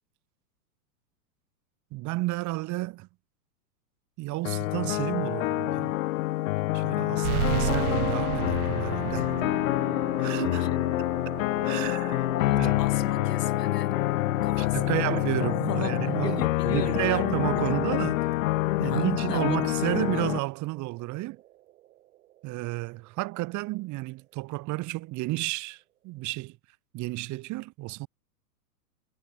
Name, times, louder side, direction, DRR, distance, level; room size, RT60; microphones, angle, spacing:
voice 1, 1.9-3.1 4.2-5.9 6.7-9.3 10.2-10.7 11.3-12.3 12.6-12.7 14.6-18.2 18.8-21.4 22.4-26.6 26.9-28.1, right 20 dB, 35° right, 8.0 m, -31 dB
sound 1, 4.5-20.4, left 18 dB, 55° left, 2.3 m, -27 dB
sound 2, 7.2-22.3, right 15 dB, 65° right, 1.8 m, -37 dB
voice 2, 12.3-14.0 14.4-15.9 16.2-17.3 17.5-17.8 18.8-19.9, left 10 dB, 80° left, 6.3 m, -37 dB
hypercardioid pair, 130°, 47 cm